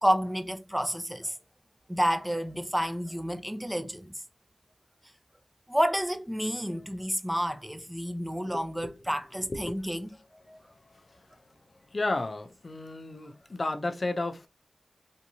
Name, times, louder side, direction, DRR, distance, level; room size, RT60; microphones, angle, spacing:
voice 1, 0.0-1.3 1.9-4.1 5.7-10.1 10.5-10.6, equal, 5° right, 0.7 m, -30 dB
voice 2, 8.4-9.8 11.9-14.5, left 2 dB, 55° left, 0.6 m, -33 dB
3.5 x 2.7 x 2.7 m
cardioid pair, 40°, 0 cm